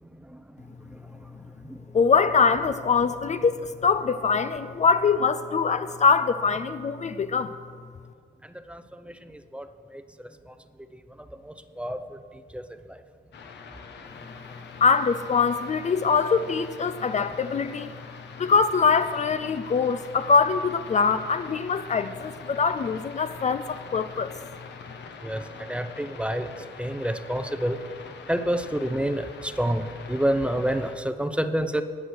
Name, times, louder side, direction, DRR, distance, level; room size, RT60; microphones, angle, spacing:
voice 1, 1.9-7.5 14.8-17.9 18.4-24.3, left 5 dB, 35° left, 11 dB, 0.5 m, -23 dB
voice 2, 8.7-9.7 9.9-10.0 11.4-12.2 12.5-12.6 25.2-25.4 25.7-26.5 26.8-27.8 28.3-31.8, right 1 dB, 5° right, 9 dB, 0.7 m, -28 dB
sound 1, 13.3-31.0, left 5 dB, 60° left, 1.2 m, -44 dB
18.0 x 6.0 x 6.4 m, 2.2 s
cardioid pair, 90°, 20 cm